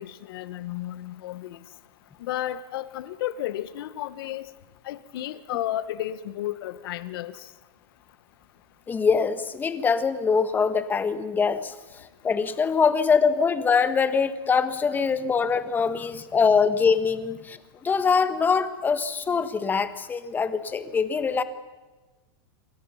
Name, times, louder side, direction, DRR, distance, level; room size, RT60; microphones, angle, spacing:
voice 1, 0.0-1.6 2.2-4.5 4.8-7.5, left 13 dB, 65° left, 14 dB, 1.2 m, -33 dB
voice 2, 8.9-17.6 17.8-21.4, left 5 dB, 15° left, 11 dB, 1.4 m, -23 dB
27.5 x 23.5 x 5.7 m, 1.2 s
supercardioid pair, 150°, 13 cm